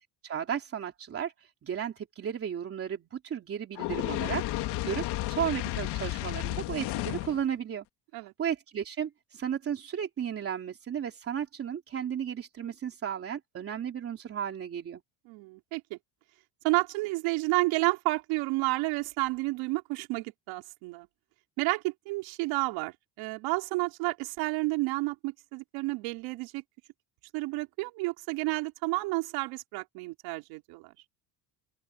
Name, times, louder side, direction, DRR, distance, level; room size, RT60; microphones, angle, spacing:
voice 1, 0.2-7.8 8.2-15.0, right 8 dB, 30° right, 3.3 m, -34 dB
Fire, 3.7-7.4, left 16 dB, 60° left, 1.9 m, -32 dB
voice 2, 15.3-16.0 16.6-21.1 21.6-26.6 27.3-30.9, right 23 dB, 85° right, 3.8 m, -31 dB
open air
cardioid pair, 165°, 45 cm